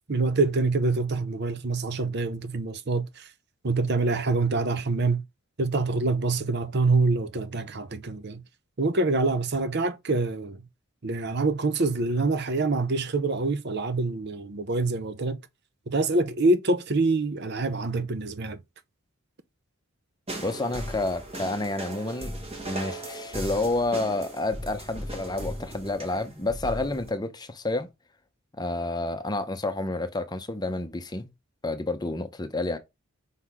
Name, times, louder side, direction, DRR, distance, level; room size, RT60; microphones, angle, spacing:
voice 1, 0.1-3.3 3.6-5.2 5.6-8.4 8.8-10.6 11.0-15.4 15.9-18.6, right 3 dB, 50° right, 0.7 m, -25 dB
sound 1, 20.3-27.1, right 1 dB, 25° right, 1.6 m, -37 dB
voice 2, 20.4-22.4 22.6-27.9 28.6-31.3 31.6-32.8, left 2 dB, 20° left, 0.7 m, -29 dB
5.5 x 4.0 x 4.8 m
head